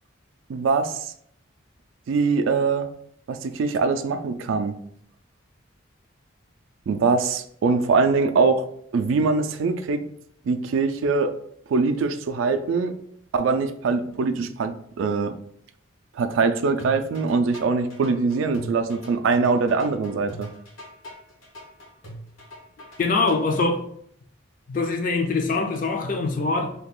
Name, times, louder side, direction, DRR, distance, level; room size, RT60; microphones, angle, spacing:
voice 1, 0.5-1.1 2.1-2.9 3.3-4.7 6.9-8.7 8.9-10.0 10.4-11.3 11.7-12.9 13.3-15.4 16.2-20.5, right 4 dB, 75° right, 0.3 m, -23 dB
sound 1, 16.8-23.6, equal, 85° left, 1.2 m, -41 dB
voice 2, 23.0-23.8 24.7-26.7, left 3 dB, 40° left, 0.4 m, -23 dB
2.8 x 2.3 x 3.6 m
head